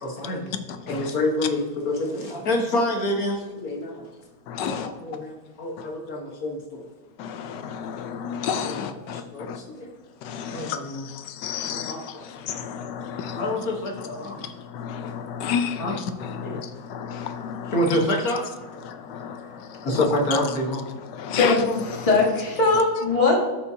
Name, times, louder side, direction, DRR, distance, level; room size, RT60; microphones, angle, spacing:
voice 1, 0.0-0.5 0.9-4.0 4.6-4.7 5.0-5.3 5.6-6.8 8.0-8.1 9.3-9.9 10.5-11.0 11.7-12.2 13.3-14.5 15.8-15.9 16.4-16.6 17.7-18.4 19.8-20.8, left 1 dB, 50° left, 0 dB, 1.6 m, -27 dB
voice 2, 0.7-1.1 4.5-4.9 7.2-9.6 10.2-17.9 18.6-22.1, left 7 dB, 70° left, 8 dB, 1.1 m, -32 dB
voice 3, 22.0-23.4, left 3 dB, 20° left, -3 dB, 1.4 m, -20 dB
13.5 x 5.5 x 2.7 m, 1.2 s
omnidirectional pair, 2.2 m